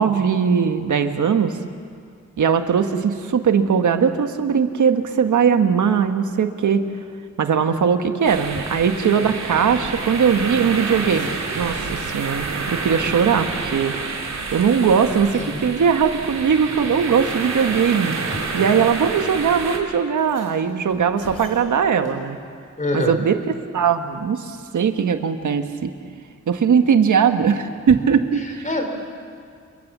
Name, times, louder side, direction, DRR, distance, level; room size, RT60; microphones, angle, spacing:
voice 1, 0.0-1.5 2.4-6.9 7.4-11.3 11.6-13.9 14.5-18.2 18.5-22.4 22.9-23.4 23.7-25.9 26.5-28.7, right 7 dB, 90° right, 7 dB, 1.5 m, -19 dB
sound 1, 8.2-19.8, right 4 dB, 65° right, 3.2 m, -29 dB
sound 2, 11.0-12.4 12.8-12.9 13.2-14.6 15.0-15.1 15.5-15.7 16.7-16.8 17.7-18.0 19.0-19.1 19.4-19.5 20.0-22.2 24.5-25.0, left 2 dB, 60° left, 6.0 m, -47 dB
voice 2, 22.8-23.2 28.3-28.8, left 2 dB, 25° left, 4 dB, 3.5 m, -26 dB
28.0 x 22.5 x 7.4 m, 2.1 s
wide cardioid pair, 165°, 29 cm